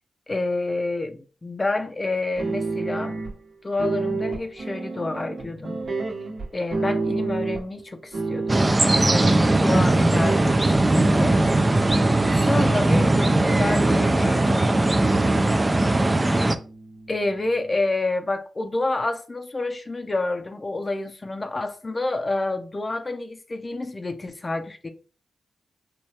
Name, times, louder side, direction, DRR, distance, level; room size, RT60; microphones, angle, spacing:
voice 1, 0.3-3.2 3.6-5.8 6.5-8.7 8.9-11.4 12.3-15.4 17.1-24.9, left 2 dB, 30° left, 0.5 m, -29 dB
sound 1, 2.4-3.3 3.8-7.8 8.1-11.9 12.5-14.1 14.6-15.2 15.5-17.8, right 3 dB, 65° right, 1.1 m, -31 dB
sound 2, 8.5-16.5, right 2 dB, 25° right, 0.3 m, -19 dB
4.6 x 2.2 x 2.8 m
cardioid pair, 65°, 0 cm